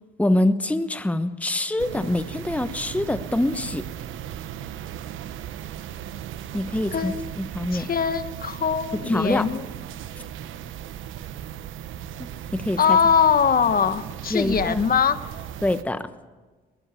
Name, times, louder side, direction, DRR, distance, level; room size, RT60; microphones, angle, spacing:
voice 1, 0.2-3.9 6.5-7.9 9.0-9.5 12.2-13.0 14.3-14.8 15.6-16.1, left 1 dB, 5° left, 10 dB, 1.0 m, -25 dB
sound 1, 1.8-15.8, right 10 dB, 85° right, 1.1 m, -37 dB
voice 2, 6.9-7.3 7.7-9.6 12.8-15.2, left 7 dB, 45° left, 11 dB, 1.3 m, -22 dB
21.0 x 18.5 x 8.4 m, 1.3 s
cardioid pair, 90°, 20 cm